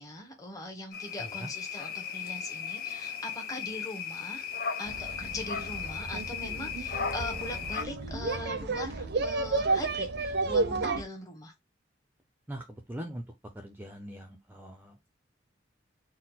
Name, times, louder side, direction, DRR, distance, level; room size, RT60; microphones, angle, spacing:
voice 1, 0.0-4.5 4.8-11.5, left 1 dB, 20° left, 1.1 m, -41 dB
sound 1, 0.9-7.8, left 6 dB, 55° left, 0.7 m, -36 dB
sound 2, 4.9-11.0, right 3 dB, 60° right, 0.6 m, -32 dB
voice 2, 12.5-13.2 13.5-15.1, right 1 dB, 10° right, 0.5 m, -42 dB
4.3 x 2.1 x 4.0 m
head